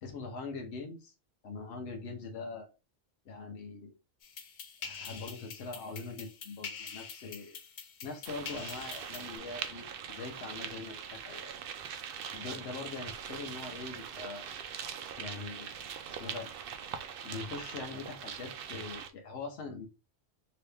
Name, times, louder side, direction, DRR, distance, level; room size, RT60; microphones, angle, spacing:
voice 1, 0.0-1.1 1.4-2.7 3.3-3.9 4.8-7.6 8.0-11.5 12.3-14.4 15.2-15.7 16.2-16.5 17.2-19.9, left 4 dB, 80° left, 2 dB, 1.0 m, -42 dB
sound 1, 4.2-9.4, left 6 dB, 55° left, 0.7 m, -45 dB
sound 2, 8.2-19.1, right 7 dB, 65° right, 0.7 m, -42 dB
2.9 x 2.8 x 3.4 m, 0.28 s
omnidirectional pair, 1.1 m